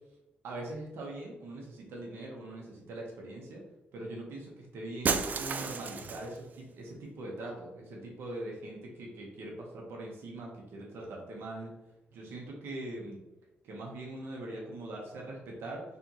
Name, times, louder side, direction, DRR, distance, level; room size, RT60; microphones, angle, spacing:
voice 1, 0.4-3.6 3.9-11.7 12.1-13.2 13.6-15.8, right 1 dB, 90° right, -1 dB, 1.1 m, -42 dB
Shatter, 5.0-6.4, right 5 dB, 45° right, 0.3 m, -32 dB
3.4 x 3.0 x 3.9 m, 0.97 s
cardioid pair, 110°, 4 cm